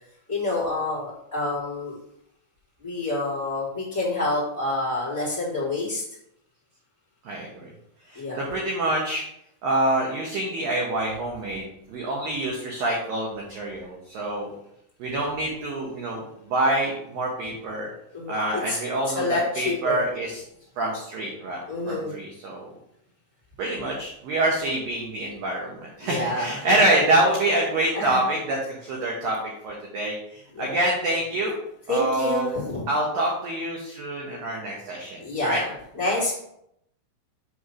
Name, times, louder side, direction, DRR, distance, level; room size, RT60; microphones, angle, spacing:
voice 1, 0.3-2.0 2.8-6.0 8.1-8.4 18.1-18.8 19.1-20.0 21.7-22.1 26.0-26.7 27.9-28.2 30.5-30.7 31.9-32.9 35.2-36.3, left 2 dB, 10° right, -8 dB, 1.6 m, -28 dB
voice 2, 7.3-7.7 8.1-9.2 9.6-14.5 15.0-17.9 18.3-20.4 20.8-22.7 23.6-31.6 31.9-32.5 32.9-35.6, right 1 dB, 75° right, -2 dB, 2.1 m, -26 dB
7.9 x 3.2 x 6.1 m, 0.75 s
omnidirectional pair, 5.5 m